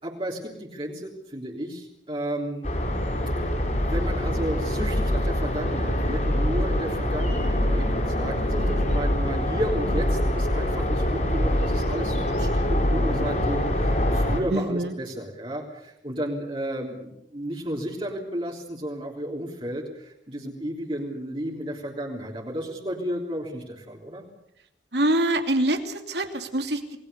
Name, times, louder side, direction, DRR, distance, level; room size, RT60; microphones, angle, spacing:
voice 1, 0.0-2.8 3.3-24.3, equal, 30° right, -2 dB, 3.5 m, -33 dB
sound 1, 2.6-14.4, left 1 dB, 45° left, 5.7 m, -24 dB
voice 2, 8.5-9.2 9.8-10.0 14.5-14.9 24.9-27.0, right 1 dB, 70° right, 6 dB, 2.8 m, -26 dB
29.0 x 20.5 x 6.9 m, 0.80 s
head